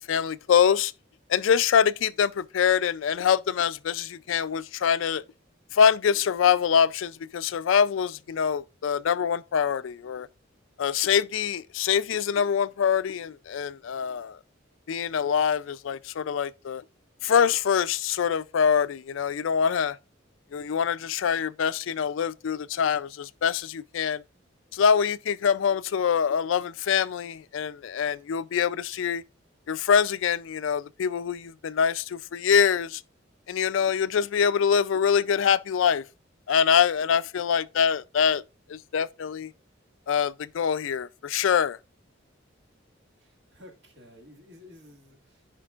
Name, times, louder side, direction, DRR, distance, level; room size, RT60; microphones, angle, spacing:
voice 1, 0.1-0.9 1.3-5.2 5.7-10.3 10.8-14.4 14.9-16.8 17.2-20.0 20.5-24.2 24.7-29.2 29.7-33.0 33.5-36.0 36.5-38.4 38.7-39.5 40.1-41.8, left 7 dB, 75° left, 0.4 m, -24 dB
voice 2, 43.2-45.5, left 1 dB, 60° right, 1.9 m, -52 dB
14.5 x 5.1 x 2.4 m
head